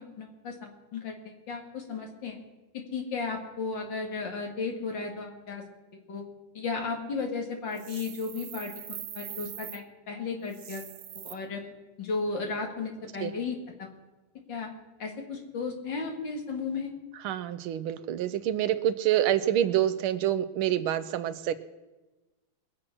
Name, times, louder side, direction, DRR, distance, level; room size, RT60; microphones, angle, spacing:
voice 1, 0.0-2.4 2.7-5.6 6.1-6.2 6.5-10.8 11.2-11.7 12.0-13.9 14.5-14.7 15.0-16.9, left 4 dB, 60° left, 3 dB, 2.5 m, -34 dB
sound 1, 7.7-9.8 10.5-11.3, right 10 dB, 70° right, 1.5 m, -42 dB
voice 2, 17.1-21.5, right 11 dB, 85° right, 13 dB, 1.5 m, -27 dB
22.0 x 7.7 x 6.0 m, 1.1 s
omnidirectional pair, 2.3 m